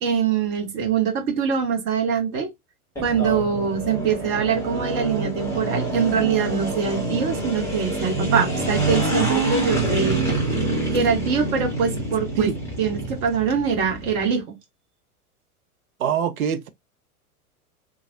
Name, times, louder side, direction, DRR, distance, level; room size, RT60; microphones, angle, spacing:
voice 1, 0.0-2.5 3.0-10.2 10.9-12.5 12.8-14.5, right 6 dB, 15° right, 0.3 m, -23 dB
sound 1, 3.0-14.3, right 2 dB, 5° left, 1.4 m, -26 dB
voice 2, 16.0-16.7, right 8 dB, 70° right, 0.6 m, -24 dB
2.8 x 2.4 x 2.7 m
figure-of-eight pair, 95°, 45 cm